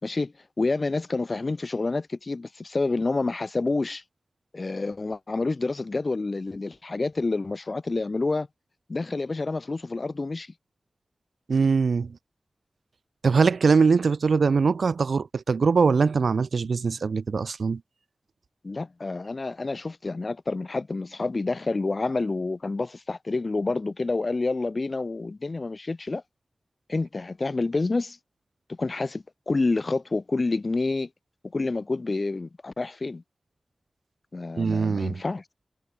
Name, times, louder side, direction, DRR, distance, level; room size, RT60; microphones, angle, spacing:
voice 1, 0.0-4.0 4.5-8.5 8.9-10.5 18.6-26.2 26.9-28.2 28.7-31.1 31.5-33.2 34.3-35.4, left 3 dB, 45° left, 1.9 m, -28 dB
voice 2, 11.5-12.2 13.2-17.8 34.6-35.2, right 5 dB, 85° right, 0.3 m, -22 dB
wide cardioid pair, 110°, 0 cm